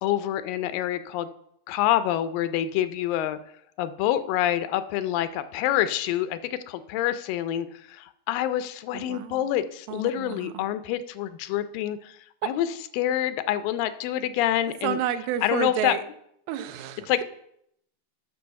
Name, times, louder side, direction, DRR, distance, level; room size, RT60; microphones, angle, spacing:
voice 1, 0.0-1.3 1.7-3.4 3.8-15.0 15.4-16.0 17.1-17.2, left 12 dB, 85° left, 13 dB, 2.3 m, -27 dB
voice 2, 8.9-9.5 9.9-10.7 12.4-12.5 14.8-16.0 16.5-17.2, right 11 dB, 90° right, 10 dB, 2.5 m, -30 dB
9.5 x 6.8 x 5.7 m, 0.74 s
omnidirectional pair, 4.0 m